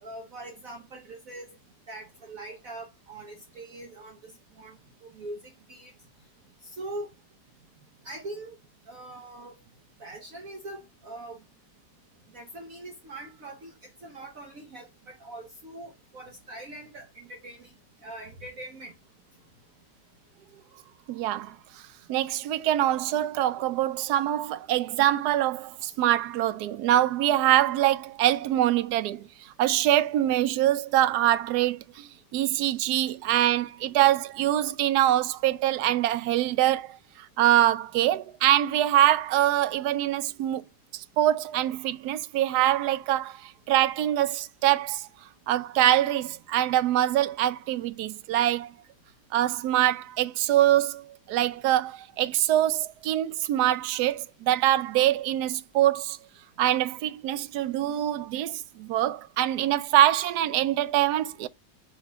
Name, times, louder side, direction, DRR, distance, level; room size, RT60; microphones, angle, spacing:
voice 1, 0.0-1.5 1.9-5.9 6.6-7.1 8.0-8.6 8.9-9.6 10.0-11.4 12.3-17.7 18.0-18.9, right 2 dB, 55° right, 1.3 m, -42 dB
voice 2, 21.1-21.6 22.1-29.3 29.6-37.0 37.4-40.6 40.9-45.1 45.5-48.7 49.3-56.2 56.6-61.5, right 13 dB, 70° right, 1.0 m, -24 dB
5.1 x 3.6 x 5.1 m
omnidirectional pair, 2.0 m